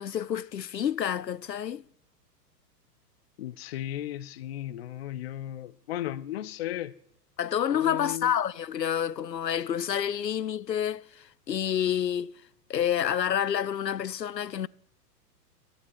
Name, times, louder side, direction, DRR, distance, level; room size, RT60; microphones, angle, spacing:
voice 1, 0.0-1.8 7.4-12.3 12.7-14.7, left 9 dB, 85° left, 0.6 m, -28 dB
voice 2, 3.4-6.9 7.7-8.3, left 12 dB, 40° left, 0.6 m, -35 dB
16.0 x 12.0 x 4.5 m
figure-of-eight pair, 105°, 49 cm